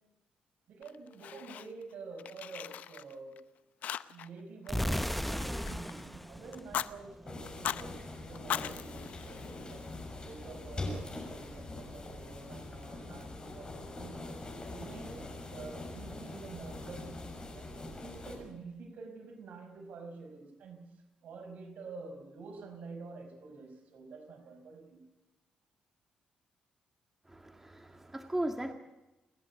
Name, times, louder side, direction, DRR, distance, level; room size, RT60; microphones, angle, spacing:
voice 1, 0.7-3.4 4.1-9.9 10.2-14.2 14.7-20.9 21.2-25.0, right 4 dB, 70° right, 4 dB, 5.2 m, -48 dB
Fire, 0.8-1.9 2.2-3.4 3.8-4.4 4.6-6.1 6.5-6.9 7.5-7.8 8.3-9.9, left 10 dB, 75° left, 0.7 m, -39 dB
sound 1, 4.7-7.5, equal, 5° left, 0.7 m, -36 dB
sound 2, 7.3-18.4, left 2 dB, 35° left, 6.7 m, -43 dB
voice 2, 27.3-28.7, right 1 dB, 10° right, 5 dB, 1.9 m, -37 dB
29.0 x 11.0 x 8.2 m, 1.0 s
cardioid pair, 90°, 3 cm